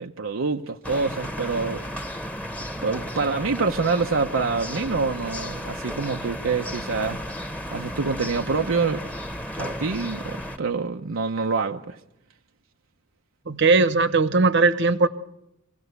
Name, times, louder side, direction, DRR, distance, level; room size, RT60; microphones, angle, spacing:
voice 1, 0.0-1.8 2.8-7.2 7.7-9.0 9.6-12.0, right 4 dB, 85° right, 0.7 m, -26 dB
sound 1, 0.8-10.6, equal, 5° left, 1.1 m, -34 dB
voice 2, 13.5-15.1, right 3 dB, 60° right, 1.0 m, -19 dB
25.0 x 16.5 x 8.1 m
head